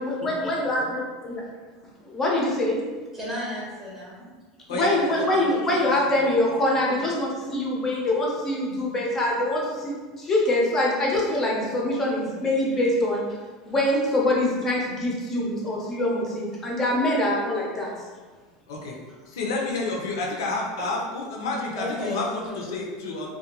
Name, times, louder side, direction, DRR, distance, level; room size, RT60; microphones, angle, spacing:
voice 1, 0.0-1.4 2.1-2.8 4.7-13.2 13.7-17.9, left 1 dB, 15° left, -3 dB, 0.5 m, -24 dB
voice 2, 3.1-4.3 4.9-6.4 21.8-22.6, left 1 dB, 15° right, -6 dB, 0.7 m, -35 dB
voice 3, 19.3-23.3, left 3 dB, 85° left, -1 dB, 0.6 m, -29 dB
2.5 x 2.2 x 2.8 m, 1.4 s
supercardioid pair, 165°, 2 cm